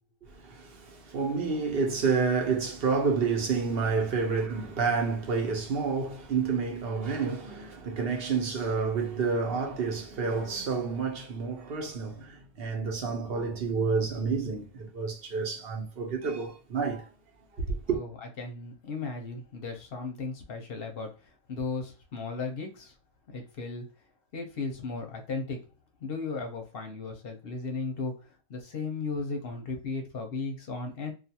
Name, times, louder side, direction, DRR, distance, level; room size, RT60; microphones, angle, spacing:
voice 1, 0.2-17.1 17.5-18.0, right 5 dB, 55° right, 0.8 m, -29 dB
voice 2, 18.4-22.9 23.3-23.8 24.3-25.6 26.0-31.1, left 4 dB, 60° left, 0.8 m, -36 dB
2.3 x 2.3 x 2.7 m
omnidirectional pair, 1.3 m